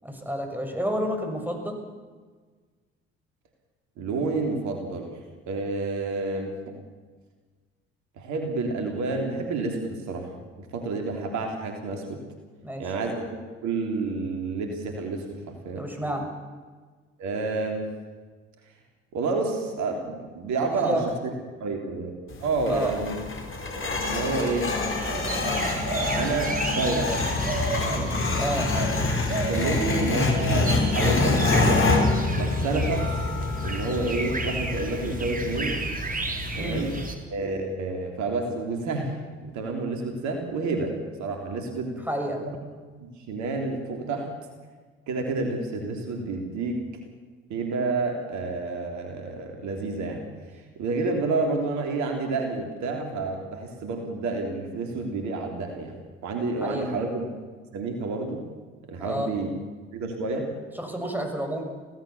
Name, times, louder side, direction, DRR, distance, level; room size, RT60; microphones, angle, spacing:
voice 1, 0.0-1.8 12.6-12.9 15.8-16.3 20.8-21.0 22.7-23.0 28.4-28.7 36.5-36.8 42.1-42.4 56.6-56.9 59.0-59.3 60.7-61.6, equal, 5° right, 3 dB, 6.5 m, -29 dB
voice 2, 4.0-5.2 5.5-6.7 8.2-12.3 12.8-15.9 17.2-17.9 19.1-21.0 21.6-23.1 23.7-24.7 26.2-27.1 27.8-28.2 28.7-28.9 29.4-32.0 32.3-33.1 33.6-35.8 36.5-37.0 37.3-41.9 42.4-42.6 43.0-44.3 45.1-46.8 47.5-50.3 50.8-57.3 57.7-58.4 58.9-59.5 59.9-60.5, right 3 dB, 65° right, 3 dB, 3.4 m, -29 dB
sound 1, 22.3-37.1, left 3 dB, 40° left, 5.2 m, -26 dB
sound 2, 23.9-37.1, right 3 dB, 25° right, 3.8 m, -33 dB
25.0 x 17.0 x 7.1 m, 1.4 s
hypercardioid pair, 50°, 31 cm